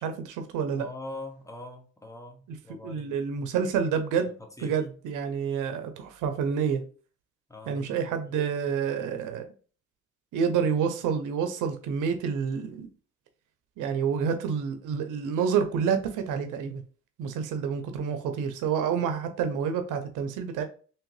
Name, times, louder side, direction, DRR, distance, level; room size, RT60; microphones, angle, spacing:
voice 1, 0.0-0.9 2.8-4.3 4.6-6.8 7.7-9.5 10.3-12.9 13.8-16.8 17.2-20.6, right 7 dB, 90° right, 0.6 m, -28 dB
voice 2, 0.8-3.1 4.4-4.8 7.5-8.2, left 2 dB, 10° left, 0.9 m, -43 dB
3.5 x 2.9 x 3.2 m
cardioid pair, 90°, 30 cm